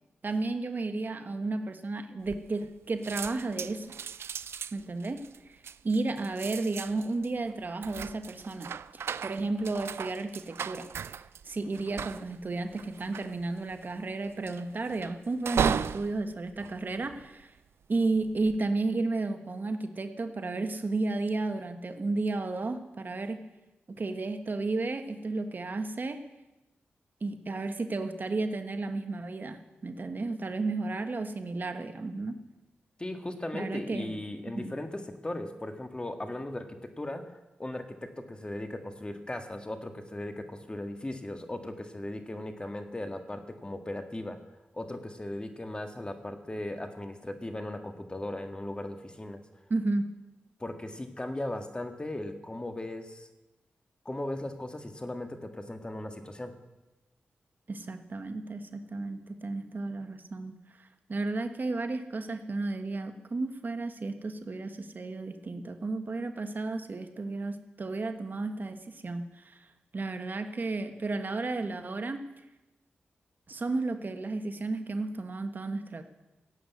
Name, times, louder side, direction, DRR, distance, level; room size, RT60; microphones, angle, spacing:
voice 1, 0.2-3.9 4.7-5.2 5.5-5.6 5.8-11.2 11.4-17.5 17.9-23.4 23.9-26.2 27.2-32.4 33.5-34.1 34.5-34.7 49.7-50.1 57.7-69.6 69.9-72.2 73.5-76.0, right 3 dB, 50° right, 8 dB, 1.3 m, -33 dB
sound 1, 2.3-2.8 3.0-17.6 18.2-18.6, right 7 dB, 80° right, 0.4 m, -37 dB
voice 2, 33.0-44.4 44.7-49.4 50.6-53.3 54.1-56.6, left 1 dB, 25° left, 6 dB, 1.8 m, -37 dB
16.0 x 8.2 x 9.3 m, 1.0 s
cardioid pair, 65°, 4 cm